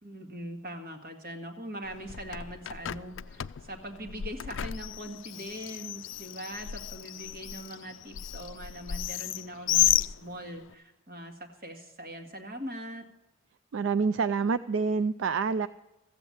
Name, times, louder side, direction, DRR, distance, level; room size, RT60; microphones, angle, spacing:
voice 1, 0.0-13.1, right 1 dB, 50° right, 2.0 m, -41 dB
Bird, 1.8-10.7, left 13 dB, 70° left, 0.4 m, -33 dB
voice 2, 13.7-15.7, right 5 dB, 70° right, 0.4 m, -27 dB
15.0 x 8.1 x 8.5 m
head